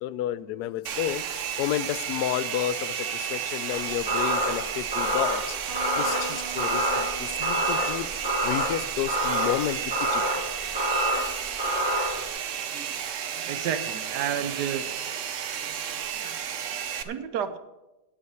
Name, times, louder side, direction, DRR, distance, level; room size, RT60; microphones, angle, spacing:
voice 1, 0.0-8.1 8.4-10.2, left 12 dB, 75° left, 16 dB, 1.0 m, -31 dB
Domestic sounds home sounds, 0.9-17.0, right 8 dB, 60° right, 0.9 m, -32 dB
sound 1, 3.7-12.3, right 1 dB, 15° right, 1.3 m, -28 dB
Electric guitar, 5.7-9.2, right 6 dB, 40° right, 2.5 m, -43 dB
voice 2, 13.5-14.9 17.0-17.6, right 8 dB, 75° right, 10 dB, 1.2 m, -30 dB
8.4 x 8.2 x 7.9 m, 1.0 s
omnidirectional pair, 1.9 m